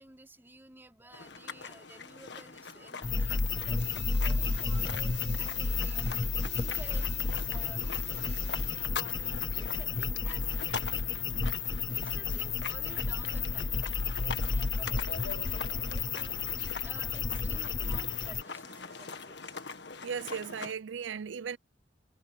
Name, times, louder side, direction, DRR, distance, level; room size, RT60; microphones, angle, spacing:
voice 1, 0.0-3.8 4.2-10.5 10.9-11.1 11.9-19.5, right 1 dB, 10° right, 4.2 m, -53 dB
sound 1, 1.1-20.7, left 4 dB, 70° left, 1.7 m, -43 dB
sound 2, 3.0-18.4, left 5 dB, 25° left, 0.4 m, -32 dB
sound 3, 3.8-9.1 12.6-12.9 18.1-19.8, right 11 dB, 70° right, 2.3 m, -55 dB
voice 2, 20.0-21.6, right 6 dB, 90° right, 0.5 m, -36 dB
head